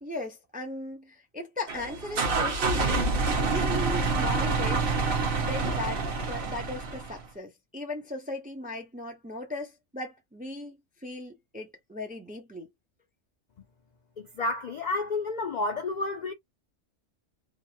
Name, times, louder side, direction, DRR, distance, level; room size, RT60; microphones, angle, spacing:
voice 1, 0.0-3.1 3.5-4.9 5.4-12.7, left 1 dB, 15° right, 0.4 m, -37 dB
sound 1, 1.7-7.2, right 3 dB, 55° right, 0.9 m, -27 dB
voice 2, 14.2-16.3, left 3 dB, 60° left, 0.4 m, -30 dB
2.9 x 2.1 x 2.6 m
omnidirectional pair, 1.3 m